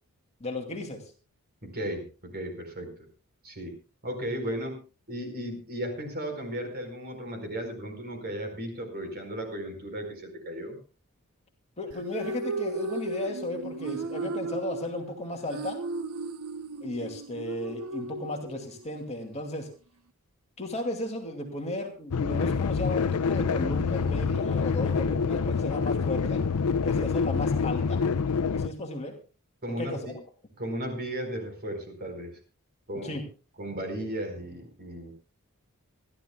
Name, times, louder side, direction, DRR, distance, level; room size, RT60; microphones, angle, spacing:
voice 1, 0.4-1.0 11.8-15.8 16.8-19.7 20.6-26.4 26.8-28.0 28.6-29.1 29.7-30.1 33.0-33.2, left 2 dB, 30° left, 2 dB, 2.4 m, -34 dB
voice 2, 1.6-2.9 3.4-3.7 4.0-4.8 5.1-10.8 29.6-30.2 30.6-32.3 32.9-33.2 33.6-35.1, equal, 45° right, 6 dB, 4.3 m, -35 dB
sound 1, 11.9-18.9, right 3 dB, 70° right, 0.7 m, -35 dB
sound 2, 22.1-28.7, left 5 dB, 80° left, 0.6 m, -26 dB
26.5 x 12.0 x 2.3 m, 0.34 s
head